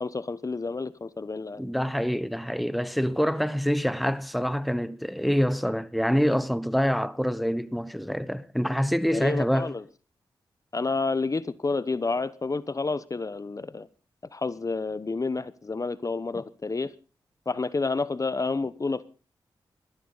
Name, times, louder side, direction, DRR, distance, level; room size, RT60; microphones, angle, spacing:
voice 1, 0.0-1.7 9.1-9.8 10.7-13.9 14.3-16.9 17.5-19.0, left 3 dB, 40° left, 0.9 m, -29 dB
voice 2, 1.6-9.7, equal, ahead, 1.0 m, -26 dB
20.5 x 14.5 x 4.0 m
cardioid pair, 50°, 9 cm